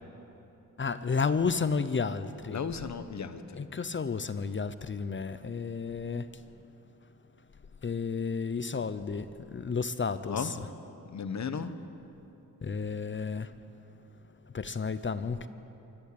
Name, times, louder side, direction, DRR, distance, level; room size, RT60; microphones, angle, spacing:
voice 1, 0.8-2.6 3.5-6.4 7.8-10.7 12.6-13.5 14.5-15.5, left 5 dB, 35° left, 13 dB, 0.7 m, -32 dB
voice 2, 2.5-3.7 10.2-10.5 11.1-11.7, left 6 dB, 50° left, 10 dB, 1.2 m, -35 dB
24.5 x 14.0 x 8.6 m, 2.9 s
cardioid pair, 95°, 35 cm